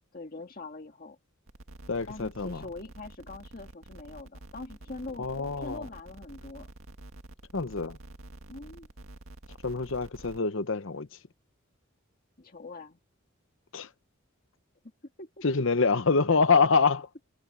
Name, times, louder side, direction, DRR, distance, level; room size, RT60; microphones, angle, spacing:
voice 1, 0.1-1.2 2.1-5.3 5.6-6.7 8.5-8.9 12.4-13.0 15.2-15.6, left 2 dB, 45° left, 1.9 m, -43 dB
sound 1, 1.5-10.4, right 1 dB, 75° right, 2.0 m, -48 dB
voice 2, 1.9-2.6 5.2-5.8 7.5-8.0 9.6-11.1 13.7-13.9 15.4-17.1, left 4 dB, 65° left, 0.9 m, -25 dB
head